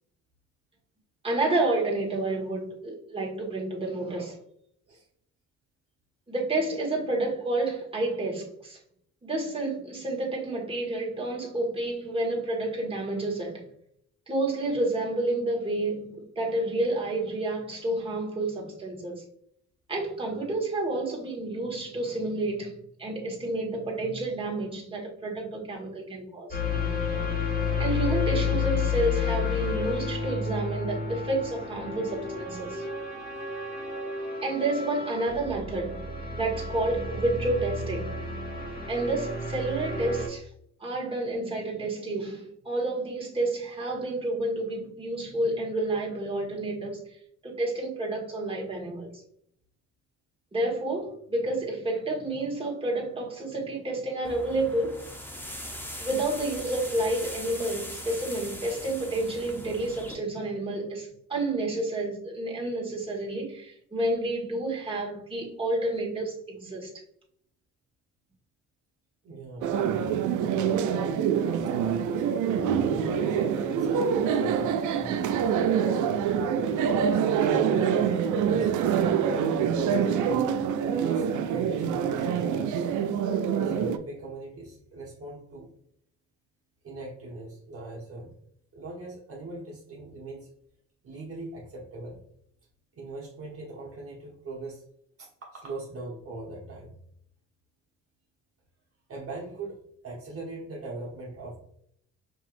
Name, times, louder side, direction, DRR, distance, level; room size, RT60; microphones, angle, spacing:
voice 1, 1.2-4.4 6.3-8.8 9.2-13.6 14.3-19.2 19.9-26.6 27.8-32.8 34.4-36.0 36.3-38.1 38.9-40.5 40.8-47.0 47.4-49.2 50.5-55.0 56.0-66.9, right 2 dB, 20° right, 1.6 m, -30 dB
sound 1, 26.5-40.3, left 4 dB, 30° left, 1.6 m, -31 dB
sound 2, 54.2-60.2, equal, 5° left, 0.8 m, -40 dB
voice 2, 69.2-69.7 70.5-71.4 72.0-72.3 72.8-75.5 76.7-77.4 77.7-78.7 79.5-82.3 83.6-85.7 86.8-88.3 88.7-90.5 91.0-92.2 92.9-94.8 95.2-97.0 99.1-101.6, right 2 dB, 50° right, 1.0 m, -41 dB
sound 3, 69.6-84.0, right 7 dB, 75° right, 0.5 m, -25 dB
5.5 x 2.8 x 2.5 m
cardioid pair, 90°, 30 cm